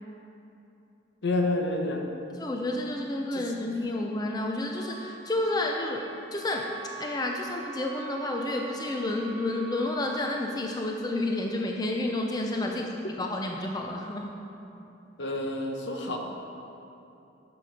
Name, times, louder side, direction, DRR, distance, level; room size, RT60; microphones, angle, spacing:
voice 1, 1.2-2.0 3.3-3.5 12.7-12.8 15.2-16.2, left 2 dB, 65° left, 2 dB, 0.9 m, -29 dB
voice 2, 2.4-6.0 6.3-6.7 7.0-12.8 13.2-14.3, left 2 dB, 20° left, 1 dB, 0.4 m, -30 dB
Wind instrument woodwind instrument, 4.7-10.5, right 5 dB, 30° right, 0.7 m, -44 dB
7.7 x 6.9 x 4.9 m, 2.8 s
head